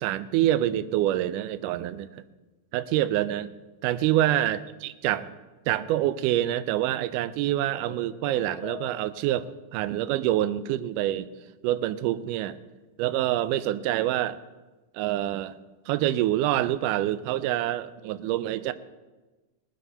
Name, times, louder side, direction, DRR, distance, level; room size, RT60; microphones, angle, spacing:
voice 1, 0.0-2.1 2.7-3.5 3.8-5.3 5.7-11.3 11.6-12.6 13.0-14.4 14.9-15.6 15.9-18.7, right 13 dB, 80° right, 13 dB, 2.1 m, -26 dB
sound 1, 7.5-9.5, left 9 dB, 75° left, 1.9 m, -44 dB
19.0 x 7.9 x 5.5 m, 1.2 s
omnidirectional pair, 3.8 m